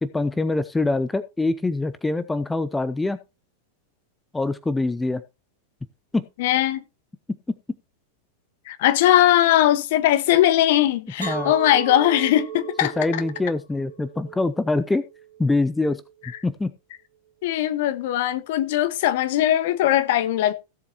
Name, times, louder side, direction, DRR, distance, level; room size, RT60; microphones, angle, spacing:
voice 1, 0.0-3.2 4.3-5.2 6.1-6.2 11.2-11.5 13.0-15.0 15.4-16.0 16.4-16.7, left 2 dB, 10° left, 0.7 m, -24 dB
voice 2, 6.4-6.8 8.7-12.9 17.4-20.5, left 13 dB, 50° left, 1.3 m, -20 dB
Chink clink, 11.2-16.4, right 7 dB, 70° right, 2.7 m, -36 dB
17.0 x 7.5 x 2.9 m
figure-of-eight pair, 90°, 0 cm